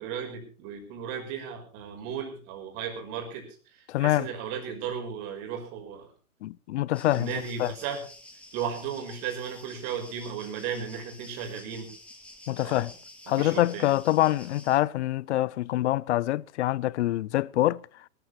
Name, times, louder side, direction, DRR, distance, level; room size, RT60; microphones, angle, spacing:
voice 1, 0.0-6.1 7.1-8.0 8.5-11.9 12.6-12.9 13.4-13.9, right 7 dB, 40° right, 5.7 m, -35 dB
voice 2, 3.9-4.3 6.4-7.3 7.6-7.7 12.5-12.9 13.3-17.9, left 15 dB, 55° left, 0.6 m, -25 dB
sound 1, 6.9-14.8, left 1 dB, 5° left, 2.9 m, -50 dB
19.0 x 14.0 x 4.3 m
hypercardioid pair, 125°, 42 cm